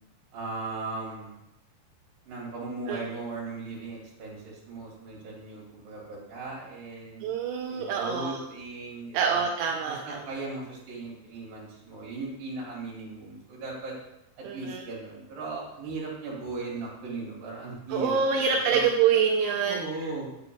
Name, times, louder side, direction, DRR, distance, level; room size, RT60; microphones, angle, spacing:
voice 1, 0.3-1.3 2.3-7.3 7.7-9.4 9.9-13.9 14.5-18.9 19.7-20.3, right 3 dB, 65° right, -5 dB, 4.3 m, -37 dB
voice 2, 7.2-8.4 9.1-10.2 14.4-14.8 17.9-19.8, right 6 dB, 85° right, 0 dB, 2.5 m, -26 dB
8.6 x 8.4 x 2.3 m, 0.89 s
omnidirectional pair, 4.5 m